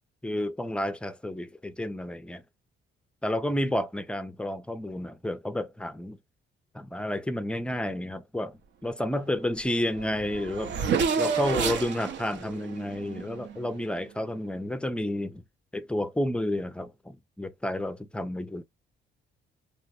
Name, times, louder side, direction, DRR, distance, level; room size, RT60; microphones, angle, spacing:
voice 1, 0.2-2.4 3.2-6.2 6.7-10.7 11.2-15.4 15.7-18.6, left 1 dB, 5° left, 0.4 m, -31 dB
Race car auto racing / Accelerating revving vroom, 9.6-9.7 9.9-13.9, right 6 dB, 65° right, 0.6 m, -30 dB
3.1 x 2.1 x 2.8 m
cardioid pair, 90°, 20 cm